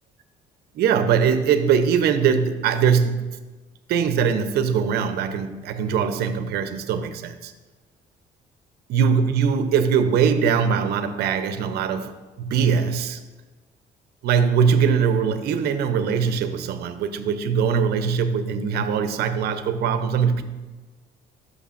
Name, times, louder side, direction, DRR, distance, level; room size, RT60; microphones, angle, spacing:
voice 1, 0.7-3.4 3.9-7.5 8.9-12.1 12.4-13.2 14.2-20.4, right 7 dB, 70° right, 0.7 m, -21 dB
12.5 x 6.4 x 2.5 m
cardioid pair, 110°, 17 cm